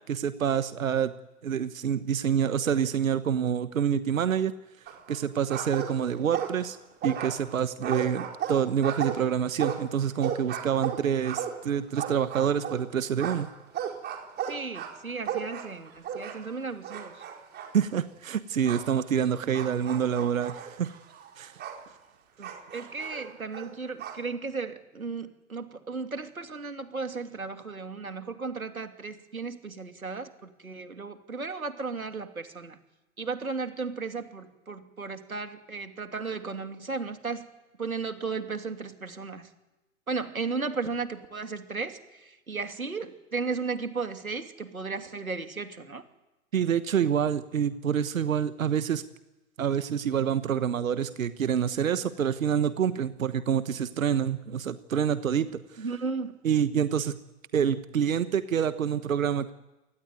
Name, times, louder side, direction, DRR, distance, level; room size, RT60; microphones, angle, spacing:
voice 1, 0.1-1.1 1.4-4.5 5.1-6.8 7.0-13.5 17.7-20.9 21.4-21.6 46.5-49.0 49.6-55.8 56.4-57.2 57.5-59.5, right 8 dB, 70° right, 13 dB, 1.3 m, -27 dB
sound 1, 4.9-5.2 5.5-6.7 7.0-12.8 13.2-16.6 16.8-17.7 18.7-18.9 19.5-21.8 22.4-24.2, right 8 dB, 25° right, 4.3 m, -35 dB
voice 2, 14.4-17.2 22.4-32.8 33.2-37.5 37.8-39.5 40.1-46.0 55.8-56.4, right 4 dB, 85° right, 7 dB, 2.9 m, -35 dB
28.5 x 19.0 x 9.4 m, 1.0 s
figure-of-eight pair, 115°, 41 cm